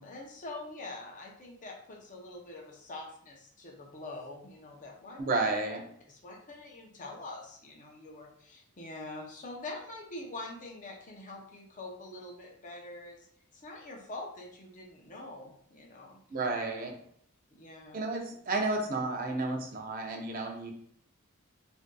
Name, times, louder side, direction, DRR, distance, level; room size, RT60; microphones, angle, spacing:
voice 1, 0.0-5.3 6.1-13.3 13.5-16.2 17.5-18.0, left 2 dB, 35° left, 0 dB, 0.6 m, -45 dB
voice 2, 5.2-5.8 16.3-17.0 17.9-20.7, right 3 dB, 40° right, 3 dB, 0.5 m, -32 dB
3.7 x 2.6 x 2.2 m, 0.64 s
head